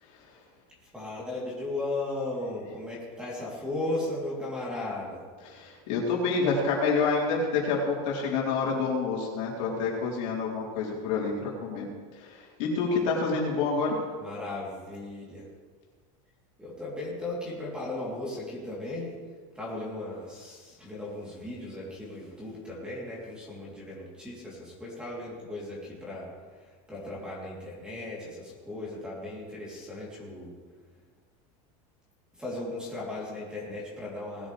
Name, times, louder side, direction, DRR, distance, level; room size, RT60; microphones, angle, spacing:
voice 1, 0.8-5.2 14.2-15.5 16.6-19.1 19.5-30.5 32.3-34.5, left 2 dB, 5° right, -5 dB, 3.3 m, -36 dB
voice 2, 5.5-11.9 12.2-14.0, left 4 dB, 60° left, -3 dB, 3.9 m, -28 dB
19.5 x 10.0 x 3.4 m, 1.5 s
supercardioid pair, 170°, 18 cm